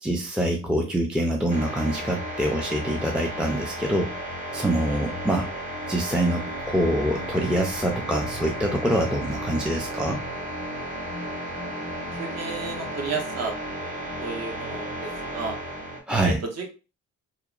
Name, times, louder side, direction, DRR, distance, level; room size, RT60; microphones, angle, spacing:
voice 1, 0.0-4.1 4.5-5.5 5.9-10.2 16.1-16.4, right 1 dB, 5° right, 1 dB, 0.3 m, -25 dB
sound 1, 1.5-16.0, equal, 20° right, 1.0 m, -33 dB
voice 2, 12.1-13.5 14.2-15.6 16.2-16.7, right 4 dB, 55° right, 3 dB, 0.8 m, -32 dB
2.8 x 2.1 x 2.4 m, 0.32 s
cardioid pair, 90°, 30 cm